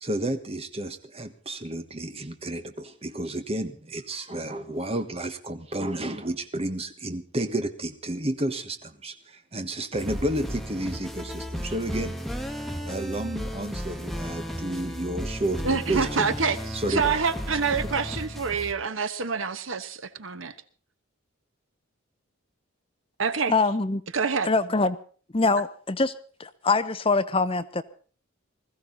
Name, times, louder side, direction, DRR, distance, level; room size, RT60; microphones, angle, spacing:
voice 1, 0.0-12.2 12.8-16.3 16.7-17.2, right 1 dB, 30° right, 1.4 m, -31 dB
sound 1, 9.9-18.7, equal, ahead, 1.3 m, -34 dB
voice 2, 15.6-20.5 23.2-23.5 24.1-24.5, right 5 dB, 75° right, 1.2 m, -27 dB
voice 3, 23.5-24.0 24.4-25.0 25.3-26.1 26.4-27.8, left 3 dB, 25° left, 0.8 m, -24 dB
20.5 x 14.5 x 4.0 m
head